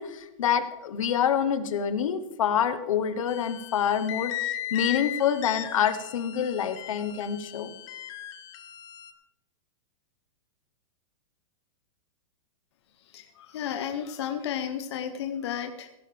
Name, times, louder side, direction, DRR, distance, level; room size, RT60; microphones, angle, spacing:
voice 1, 0.0-7.7, left 8 dB, 70° left, 10 dB, 1.2 m, -27 dB
sound 1, 3.3-9.1, left 13 dB, 20° left, 0.6 m, -37 dB
voice 2, 13.0-15.9, left 9 dB, 50° left, 6 dB, 0.9 m, -33 dB
17.0 x 11.0 x 3.4 m, 0.98 s
supercardioid pair, 180°, 18 cm